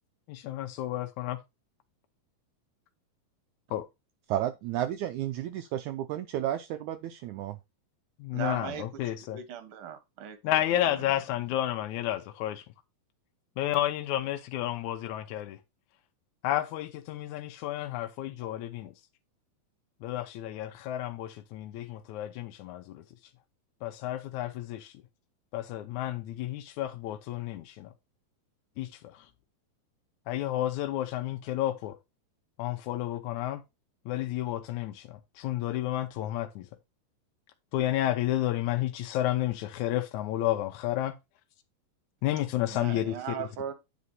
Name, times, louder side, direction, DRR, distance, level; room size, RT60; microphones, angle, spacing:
voice 1, 0.3-1.4 3.7-3.8 8.2-9.4 10.4-12.6 13.6-15.6 16.4-18.9 20.0-23.0 23.8-24.9 25.5-27.9 28.8-28.9 30.3-31.9 32.6-33.6 34.1-36.7 37.7-41.2 42.2-43.1, left 13 dB, 75° left, 1.9 m, -31 dB
voice 2, 4.3-7.6, right 12 dB, 85° right, 1.7 m, -32 dB
voice 3, 8.3-10.4 10.7-11.1 42.7-43.7, right 9 dB, 55° right, 1.5 m, -38 dB
9.6 x 3.7 x 5.5 m
omnidirectional pair, 4.1 m